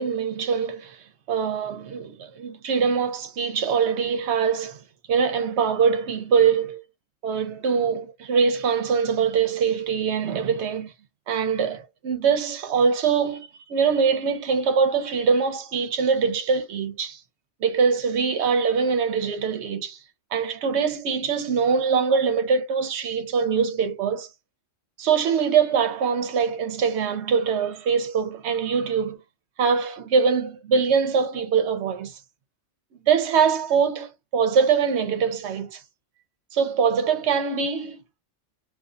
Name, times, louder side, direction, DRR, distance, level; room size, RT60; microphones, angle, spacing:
voice 1, 0.0-4.8 5.1-6.8 7.2-10.9 11.3-17.2 17.6-20.0 20.3-24.3 25.0-29.2 29.6-32.2 33.1-35.8 36.5-38.0, right 6 dB, 65° right, 0.8 m, -23 dB
2.6 x 2.3 x 2.3 m
omnidirectional pair, 1.3 m